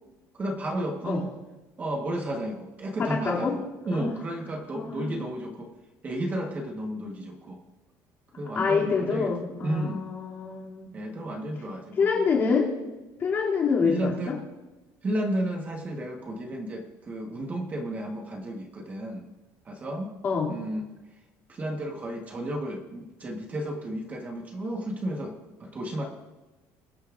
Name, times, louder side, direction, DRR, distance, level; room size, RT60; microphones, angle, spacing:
voice 1, 0.3-1.3 1.8-5.7 6.0-7.6 8.4-9.3 9.6-10.1 10.9-12.1 13.9-14.4 15.0-19.3 19.6-20.1 20.5-20.9 21.5-26.1, right 1 dB, 25° right, 2 dB, 1.2 m, -32 dB
voice 2, 3.0-3.6 3.9-4.2 4.7-5.2 8.6-11.0 12.0-12.7 13.2-14.4 20.2-20.5, left 5 dB, 30° left, -3 dB, 2.5 m, -26 dB
22.0 x 9.4 x 2.5 m, 1.1 s
cardioid pair, 165°, 7 cm